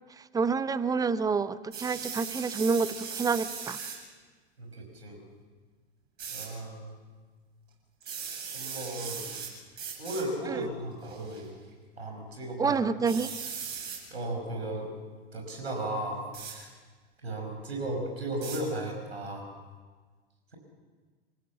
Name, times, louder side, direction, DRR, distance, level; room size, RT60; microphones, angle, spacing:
voice 1, 0.2-3.8 10.5-10.6 12.6-13.3, right 5 dB, 10° right, 15 dB, 0.7 m, -28 dB
sound 1, 1.7-4.0 6.2-6.5 8.0-9.5 9.8-10.2 11.0-11.4 13.1-14.0 16.3-16.6 18.4-18.6, right 7 dB, 35° right, 7.7 m, -38 dB
voice 2, 4.6-5.2 6.3-6.9 8.5-9.3 10.0-11.5 12.0-12.8 14.1-14.9 15.3-16.7 17.2-19.5, right 1 dB, 80° right, 2 dB, 5.7 m, -35 dB
27.0 x 15.5 x 7.1 m, 1.4 s
figure-of-eight pair, 95°, 31 cm